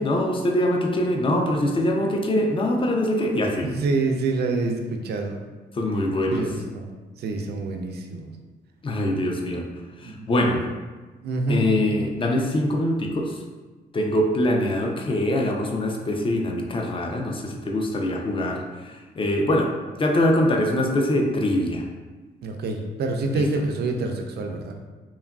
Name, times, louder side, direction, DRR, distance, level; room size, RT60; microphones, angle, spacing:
voice 1, 0.0-3.7 5.8-6.4 8.8-9.6 10.0-10.6 11.5-13.3 13.9-18.6 19.2-19.7 20.0-21.8 23.3-23.5, left 1 dB, 30° left, 1 dB, 0.4 m, -23 dB
voice 2, 3.6-5.4 6.3-8.3 10.0-10.3 11.2-11.7 22.4-24.7, right 3 dB, 65° right, 4 dB, 0.4 m, -27 dB
2.8 x 2.4 x 2.3 m, 1.3 s
cardioid pair, 85°, 18 cm